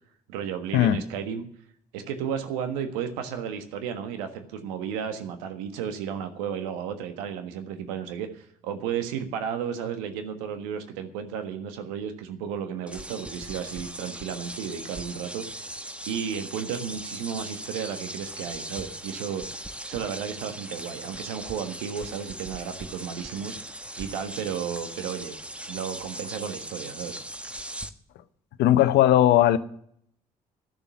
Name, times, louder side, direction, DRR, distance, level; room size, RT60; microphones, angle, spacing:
voice 1, 0.3-1.4 1.9-15.6 16.1-19.4 19.9-23.5 24.0-25.3 25.7-27.2, right 8 dB, 80° right, 1.5 m, -33 dB
sound 1, 12.9-27.9, right 1 dB, 5° right, 1.1 m, -39 dB
voice 2, 28.6-29.6, left 12 dB, 65° left, 0.9 m, -18 dB
12.0 x 6.9 x 9.4 m
hypercardioid pair, 50°, 19 cm